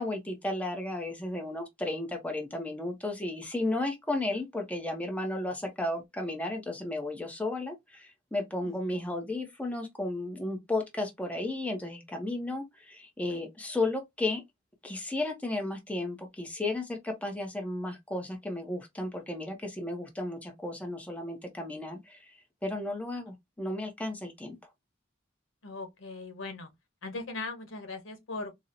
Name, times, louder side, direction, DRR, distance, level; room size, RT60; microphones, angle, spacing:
voice 1, 0.0-14.4 14.8-22.3 22.6-24.6, left 2 dB, 5° left, 0.6 m, -34 dB
voice 2, 8.6-9.0 25.6-26.7 27.0-28.6, left 3 dB, 90° left, 1.0 m, -39 dB
4.0 x 2.0 x 2.5 m
head